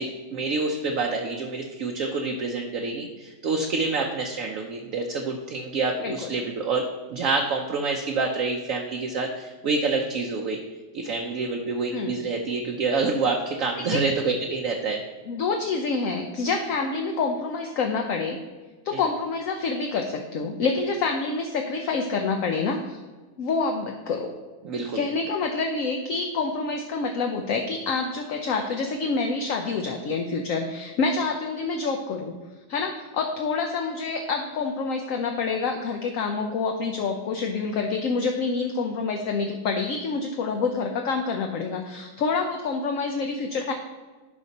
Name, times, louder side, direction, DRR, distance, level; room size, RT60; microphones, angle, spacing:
voice 1, 0.0-10.6 10.9-15.0 18.9-19.0 24.6-25.0, right 3 dB, 60° right, 2 dB, 1.0 m, -27 dB
voice 2, 15.3-18.4 18.8-23.0 23.4-24.3 24.9-32.3 32.7-43.7, left 4 dB, 60° left, 3 dB, 0.9 m, -27 dB
11.0 x 5.2 x 4.1 m, 1.3 s
omnidirectional pair, 1.9 m